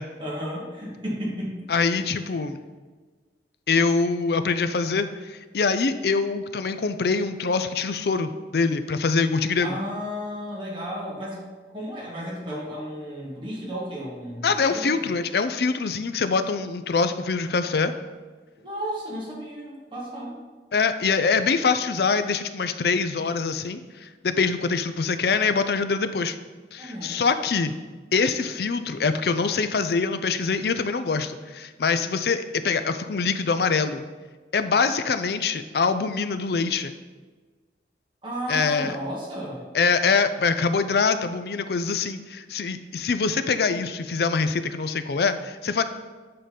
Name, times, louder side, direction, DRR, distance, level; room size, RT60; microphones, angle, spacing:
voice 1, 0.2-1.6 9.6-11.5 11.7-15.1 18.6-20.4 26.8-27.2 38.2-39.6, equal, 25° right, -5 dB, 2.0 m, -33 dB
voice 2, 1.7-2.6 3.7-9.8 14.4-17.9 20.7-26.4 26.7-27.7 28.1-34.0 34.5-36.9 38.5-38.9 39.7-45.8, left 4 dB, 60° left, 10 dB, 0.5 m, -24 dB
8.7 x 3.8 x 5.3 m, 1.4 s
head